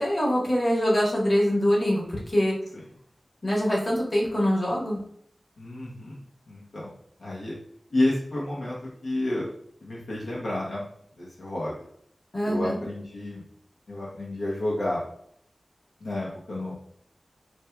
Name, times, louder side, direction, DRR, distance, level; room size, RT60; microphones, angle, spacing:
voice 1, 0.0-2.5 3.4-5.0 12.3-12.8, equal, 45° left, -4 dB, 1.4 m, -24 dB
voice 2, 5.6-6.9 7.2-7.5 7.9-9.5 9.8-10.8 11.2-11.7 12.4-13.4 13.9-15.0 16.0-16.7, left 1 dB, 85° left, -5 dB, 0.8 m, -30 dB
4.1 x 2.2 x 2.3 m, 0.65 s
cardioid pair, 45°, 0 cm